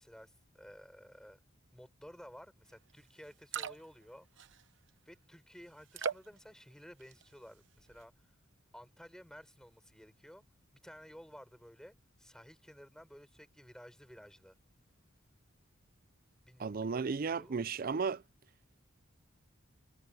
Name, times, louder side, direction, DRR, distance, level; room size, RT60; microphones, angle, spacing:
voice 1, 0.0-1.4 1.7-4.3 5.0-8.1 8.7-10.4 10.7-14.6 16.4-17.6, equal, 5° left, 6.6 m, -54 dB
sound 1, 2.9-3.0 3.3-4.0 4.4-4.9 5.9-6.4 6.9-7.4 7.8-8.0, right 6 dB, 60° right, 0.9 m, -39 dB
voice 2, 16.6-18.2, right 5 dB, 45° right, 0.4 m, -34 dB
head